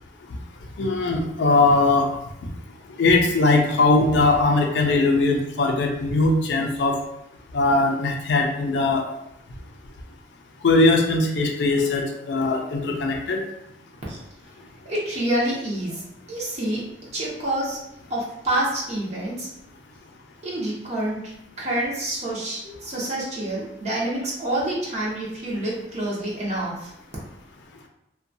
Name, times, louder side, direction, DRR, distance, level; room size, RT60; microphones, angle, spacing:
voice 1, 0.8-2.1 3.0-7.0 7.5-9.0 10.6-13.4, left 3 dB, 70° left, 2 dB, 0.4 m, -20 dB
voice 2, 14.9-16.0 16.3-16.9 17.1-17.8 18.1-19.5 20.4-26.9, right 1 dB, 40° right, -5 dB, 0.6 m, -27 dB
2.6 x 2.2 x 2.6 m, 0.81 s
head